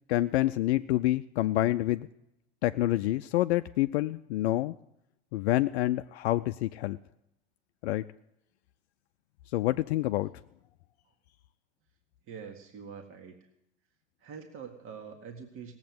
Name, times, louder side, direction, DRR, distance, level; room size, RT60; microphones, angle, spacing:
voice 1, 0.1-2.1 2.6-4.7 5.3-7.0 7.8-8.0 9.5-10.3, left 15 dB, 70° left, 9 dB, 0.5 m, -27 dB
voice 2, 12.3-13.4 14.2-15.7, right 6 dB, 35° right, 4 dB, 1.8 m, -44 dB
17.5 x 8.0 x 9.3 m, 0.81 s
hypercardioid pair, 90°, 34 cm